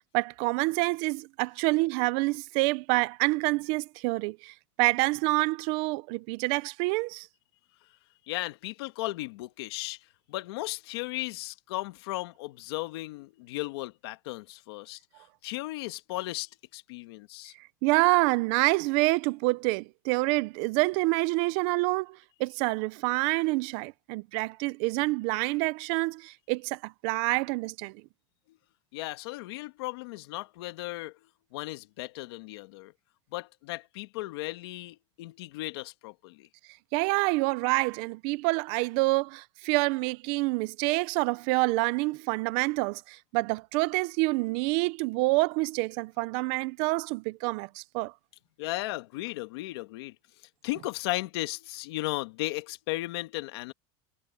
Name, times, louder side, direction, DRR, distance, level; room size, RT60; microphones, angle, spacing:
voice 1, 0.1-7.3 17.8-27.9 36.9-48.1, right 24 dB, 40° right, 0.4 m, -27 dB
voice 2, 8.3-15.0 15.4-17.5 28.5-28.6 28.9-31.2 31.5-32.9 33.3-36.5 48.6-50.1 50.6-53.7, left 19 dB, 60° left, 1.6 m, -36 dB
supercardioid pair, 180°, 15 cm